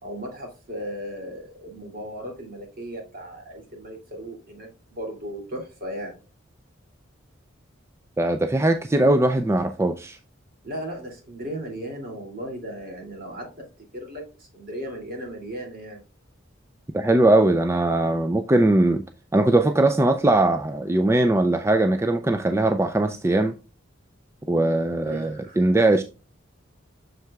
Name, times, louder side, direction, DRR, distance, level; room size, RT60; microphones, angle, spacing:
voice 1, 0.0-6.2 10.6-13.7 13.9-16.0 25.0-25.6, equal, 45° right, 2.7 m, -36 dB
voice 2, 8.2-10.2 16.9-19.0 19.3-23.5 24.5-26.0, right 2 dB, 15° right, 0.4 m, -20 dB
7.5 x 6.5 x 2.3 m
head